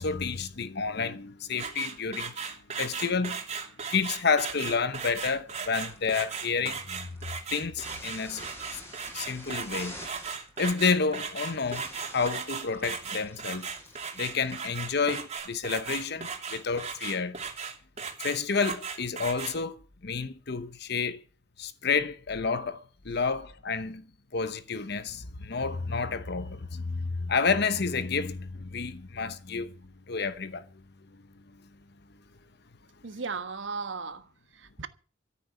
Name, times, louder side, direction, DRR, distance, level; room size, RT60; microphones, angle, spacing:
voice 1, 0.0-3.4 3.9-7.1 7.5-8.5 9.1-10.0 10.6-11.9 12.1-13.7 14.2-17.4 18.2-21.2 21.6-24.0 24.3-29.7 30.1-30.7, left 5 dB, 60° left, 1.0 m, -30 dB
sound 1, 1.5-19.6, right 6 dB, 35° right, 3.1 m, -37 dB
sound 2, 5.8-15.4, equal, 15° left, 7.2 m, -48 dB
voice 2, 33.0-34.9, right 4 dB, 75° right, 1.3 m, -36 dB
14.0 x 8.5 x 8.2 m
head